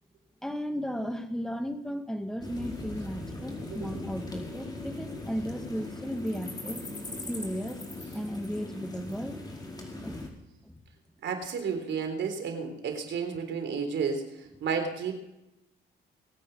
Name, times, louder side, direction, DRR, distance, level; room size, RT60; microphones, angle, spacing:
voice 1, 0.4-6.8 7.3-7.8 8.1-9.4 10.0-10.3 10.6-10.8, equal, 5° left, 7 dB, 1.7 m, -35 dB
sound 1, 2.4-10.3, left 2 dB, 20° left, 4.8 m, -39 dB
voice 2, 3.7-4.0 11.2-15.1, right 6 dB, 65° right, 5 dB, 3.7 m, -32 dB
22.0 x 9.2 x 5.4 m, 0.90 s
cardioid pair, 90°, 20 cm